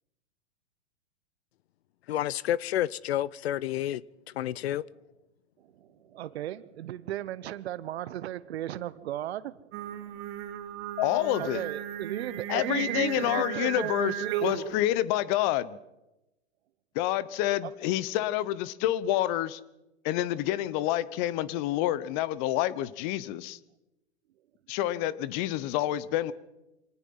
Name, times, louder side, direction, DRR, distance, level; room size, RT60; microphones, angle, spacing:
voice 1, 2.1-4.0 4.3-4.8, left 12 dB, 65° left, 0.7 m, -29 dB
voice 2, 5.8-10.1 11.4-14.6, right 13 dB, 65° right, 1.1 m, -36 dB
Singing, 9.7-14.8, right 11 dB, 40° right, 2.3 m, -35 dB
voice 3, 11.0-11.6 12.5-14.1 14.4-15.8 16.9-19.6 20.0-23.6 24.7-26.3, left 14 dB, 40° left, 1.1 m, -28 dB
25.0 x 18.5 x 5.7 m
hypercardioid pair, 120°, 34 cm